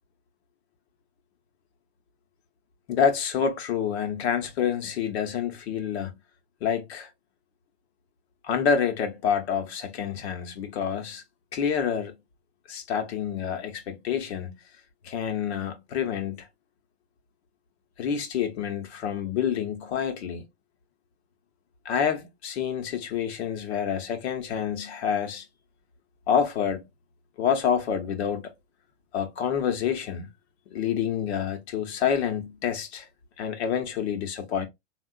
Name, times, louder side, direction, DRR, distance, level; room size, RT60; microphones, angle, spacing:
voice 1, 2.9-6.1 6.6-7.1 8.4-11.2 11.5-12.1 12.7-14.6 15.0-16.5 18.0-20.4 21.8-25.4 26.3-26.8 27.4-28.5 29.1-30.3 30.7-33.1 33.4-34.7, left 7 dB, 85° left, 0.9 m, -28 dB
3.6 x 2.4 x 2.3 m
supercardioid pair, 135°, 32 cm